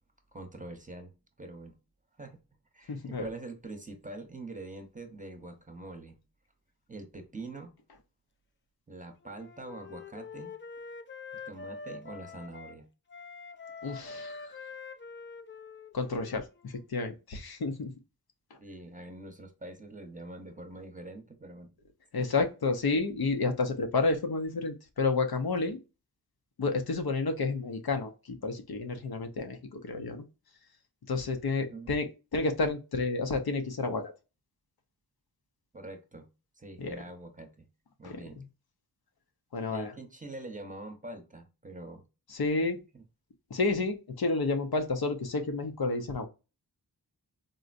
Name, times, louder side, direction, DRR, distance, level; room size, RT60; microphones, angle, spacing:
voice 1, 0.3-1.1 1.4-1.8 2.2-2.4 2.7-6.2 6.9-7.7 8.9-10.5 11.5-12.9 18.6-21.7 22.2-22.3 31.5-32.0 35.7-36.3 36.6-37.7 38.0-38.4 39.7-42.0 42.9-43.0, right 2 dB, 20° right, 5 dB, 0.8 m, -44 dB
voice 2, 2.9-3.3 13.8-14.6 15.9-17.9 22.1-25.8 26.6-30.3 31.1-34.1 36.8-37.0 38.0-38.4 39.5-39.9 42.3-42.8 43.5-46.3, left 3 dB, 70° left, 5 dB, 0.6 m, -30 dB
Wind instrument woodwind instrument, 9.2-12.8 13.1-16.9, left 4 dB, 30° left, 0.4 m, -45 dB
3.8 x 2.1 x 2.5 m, 0.29 s
wide cardioid pair, 60°, 39 cm